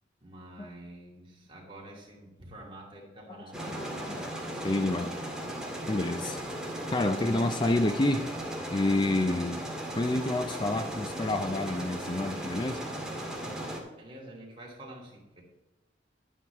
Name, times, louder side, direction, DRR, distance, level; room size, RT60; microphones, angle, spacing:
voice 1, 0.2-4.2 6.1-6.5 7.1-7.4 13.4-15.4, right 1 dB, 30° right, -2 dB, 2.8 m, -48 dB
voice 2, 3.3-5.1 5.9-6.4 6.9-8.3 8.7-9.6 10.0-12.8, left 2 dB, 25° left, 8 dB, 0.5 m, -29 dB
sound 1, 3.5-13.8, right 1 dB, 5° right, 1.9 m, -37 dB
11.5 x 9.2 x 3.6 m, 1.1 s
head